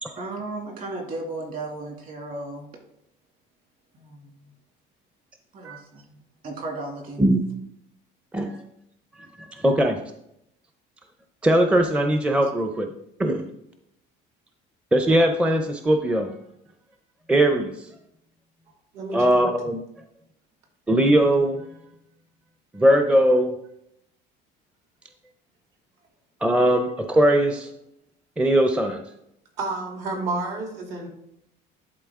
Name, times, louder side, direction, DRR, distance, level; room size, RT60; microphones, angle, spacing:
voice 1, 0.2-2.7 3.9-4.5 5.5-6.2 6.4-7.2 12.4-12.5, right 2 dB, 45° right, 2.2 m, -35 dB
voice 2, 9.4-10.0 11.4-12.9 13.2-13.4 14.9-16.3 17.3-17.9 19.1-19.8 20.9-21.6 22.7-23.5 26.4-27.7 28.4-29.0, right 1 dB, 5° right, 0.5 m, -20 dB
voice 3, 18.9-19.4 29.6-31.1, right 3 dB, 65° right, 2.7 m, -30 dB
11.0 x 4.1 x 3.6 m
cardioid pair, 130°, 20 cm